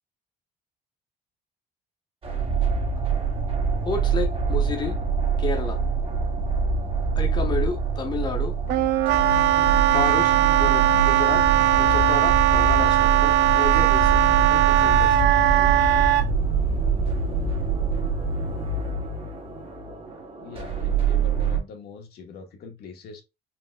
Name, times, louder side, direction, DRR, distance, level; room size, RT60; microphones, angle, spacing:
sound 1, 2.2-21.6, right 5 dB, 35° right, 1.5 m, -25 dB
voice 1, 3.8-5.0 5.4-5.8 7.2-8.6 9.9-11.5 11.8-14.2 14.5-15.2, left 4 dB, 25° left, 1.0 m, -31 dB
Wind instrument woodwind instrument, 8.7-16.3, right 13 dB, 80° right, 0.4 m, -19 dB
voice 2, 20.4-23.2, left 5 dB, 70° left, 1.2 m, -43 dB
4.3 x 2.9 x 2.2 m
cardioid pair, 110°, 17 cm